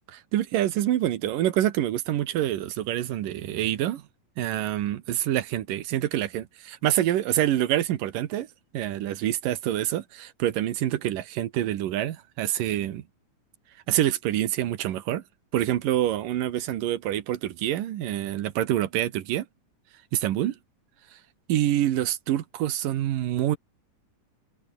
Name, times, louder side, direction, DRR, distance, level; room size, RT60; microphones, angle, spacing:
voice 1, 0.1-4.0 4.4-8.5 8.7-13.0 13.9-15.2 15.5-19.5 20.1-20.6 21.5-23.6, right 12 dB, 85° right, 3.0 m, -26 dB
omnidirectional pair, 3.8 m